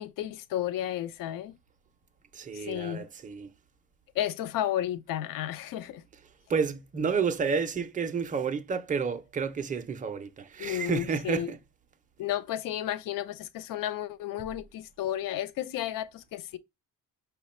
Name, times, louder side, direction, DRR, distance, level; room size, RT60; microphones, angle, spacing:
voice 1, 0.0-1.5 2.5-3.1 4.1-6.0 10.6-11.5 12.2-16.6, left 12 dB, 70° left, 0.5 m, -32 dB
voice 2, 2.3-3.5 6.5-11.6, right 5 dB, 25° right, 0.4 m, -30 dB
5.6 x 2.1 x 4.1 m
cardioid pair, 175°, 35 cm